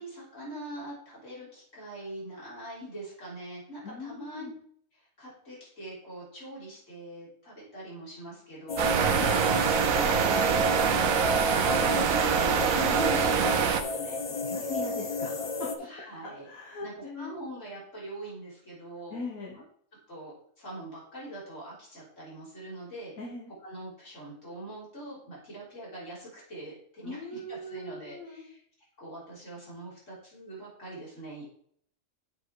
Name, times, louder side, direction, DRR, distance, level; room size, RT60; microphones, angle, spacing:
voice 1, 0.0-4.5 4.9-9.5 9.8-10.5 10.9-11.1 11.4-14.2 14.6-15.0 15.8-16.5 16.8-19.2 20.1-23.1 23.6-28.6 29.0-31.5, right 1 dB, 65° left, -7 dB, 4.0 m, -42 dB
voice 2, 3.8-4.5 9.0-9.3 14.3-15.7 16.2-17.3 19.1-19.6 23.2-23.5 27.0-28.5, left 3 dB, 80° left, -3 dB, 1.6 m, -40 dB
sound 1, 8.7-15.8, left 2 dB, 45° left, 0.4 m, -32 dB
sound 2, 8.8-13.8, right 7 dB, 80° right, 1.1 m, -25 dB
7.1 x 4.9 x 4.6 m, 0.63 s
omnidirectional pair, 1.4 m